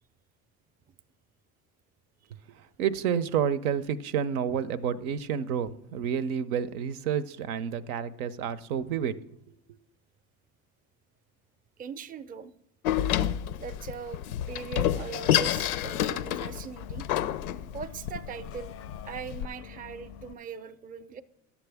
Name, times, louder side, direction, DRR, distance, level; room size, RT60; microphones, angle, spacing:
voice 1, 2.5-9.2, right 8 dB, 80° right, 14 dB, 0.6 m, -29 dB
voice 2, 11.8-12.5 13.6-14.2 14.5-17.1 17.7-18.7 19.0-21.2, right 6 dB, 20° right, 14 dB, 0.5 m, -40 dB
Door, 12.8-19.5, left 11 dB, 85° left, 0.5 m, -29 dB
Bus, 15.3-20.3, left 7 dB, 35° left, 0.4 m, -46 dB
11.0 x 7.0 x 3.4 m, 0.84 s
hypercardioid pair, 75°, 43 cm